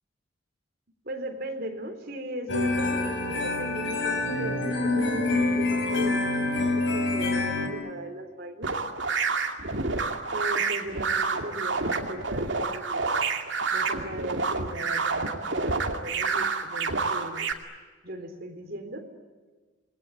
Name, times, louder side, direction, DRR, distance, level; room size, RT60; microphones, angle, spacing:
voice 1, 1.0-8.7 10.3-13.3 13.7-17.5 18.0-19.1, right 1 dB, 50° right, 4 dB, 3.7 m, -38 dB
sound 1, 2.5-7.7, left 2 dB, 65° left, 4.5 m, -26 dB
sound 2, 8.6-17.5, right 4 dB, 65° right, 2.5 m, -28 dB
28.5 x 20.5 x 9.9 m, 1.4 s
head